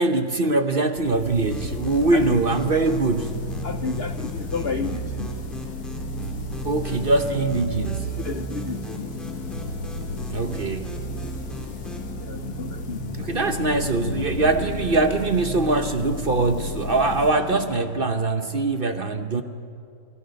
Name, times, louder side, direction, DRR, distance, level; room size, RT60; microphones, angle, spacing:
voice 1, 0.0-3.4 6.6-8.1 10.3-11.0 13.2-19.4, right 3 dB, 40° right, 8 dB, 0.9 m, -22 dB
sound 1, 1.0-18.5, equal, 75° left, 2.1 m, -33 dB
sound 2, 1.5-12.1, equal, ahead, 3.0 m, -42 dB
voice 2, 3.6-5.3 8.2-9.1 12.2-13.4, left 5 dB, 55° left, 9 dB, 0.7 m, -32 dB
28.5 x 25.0 x 5.3 m, 2.5 s
omnidirectional pair, 1.7 m